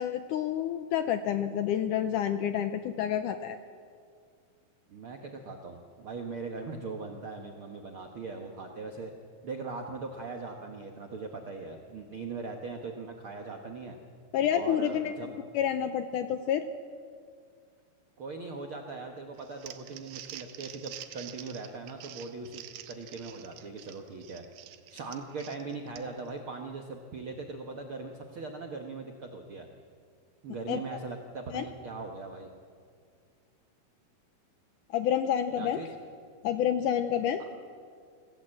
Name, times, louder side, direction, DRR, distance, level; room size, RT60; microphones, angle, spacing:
voice 1, 0.0-3.6 14.3-16.7 30.7-30.8 31.5-31.7 34.9-35.8 36.4-37.4, left 9 dB, 80° left, 9 dB, 1.9 m, -29 dB
voice 2, 4.9-9.1 9.4-14.0 14.5-15.5 18.2-24.4 24.9-29.7 30.4-32.5 35.6-35.9 37.4-37.5, right 4 dB, 65° right, 3 dB, 1.3 m, -40 dB
Crumpling crinkling, 19.4-26.3, right 12 dB, 85° right, 2.9 m, -47 dB
25.5 x 17.0 x 7.7 m, 2.2 s
omnidirectional pair, 4.3 m